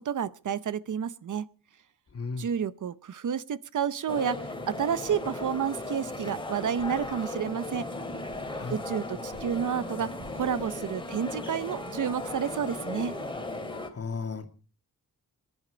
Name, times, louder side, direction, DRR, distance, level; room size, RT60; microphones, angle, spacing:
voice 1, 0.0-1.5 2.4-7.9 8.7-13.1, right 8 dB, 65° right, 0.8 m, -30 dB
voice 2, 2.1-2.5 8.5-8.8 13.9-14.5, left 4 dB, 45° left, 2.4 m, -34 dB
sound 1, 4.1-13.9, left 2 dB, 15° left, 2.7 m, -36 dB
sound 2, 6.8-7.8 8.3-11.6, right 1 dB, 30° right, 5.8 m, -54 dB
25.5 x 11.0 x 5.0 m
wide cardioid pair, 160°, 33 cm